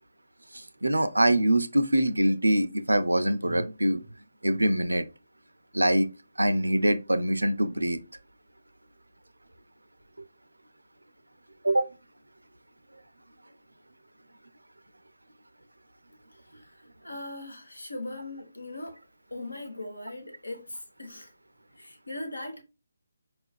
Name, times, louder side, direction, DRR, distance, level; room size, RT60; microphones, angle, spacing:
voice 1, 0.5-4.1 4.4-5.1 5.7-6.1 6.4-8.0 11.6-11.9, right 1 dB, 85° right, 0.4 m, -24 dB
voice 2, 16.3-16.8 17.0-19.0 19.3-21.3 21.8-22.6, left 2 dB, 90° left, 1.0 m, -39 dB
4.7 x 2.4 x 2.3 m
figure-of-eight pair, 150°, 0 cm